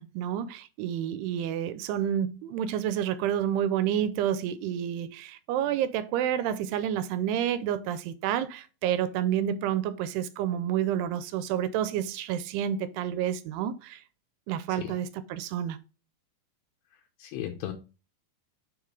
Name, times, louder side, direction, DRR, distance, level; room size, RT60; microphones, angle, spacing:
voice 1, 0.0-14.0 14.5-15.8, right 10 dB, 85° right, 2.6 m, -29 dB
voice 2, 17.2-17.7, left 12 dB, 75° left, 2.5 m, -36 dB
6.9 x 3.8 x 4.7 m
omnidirectional pair, 4.7 m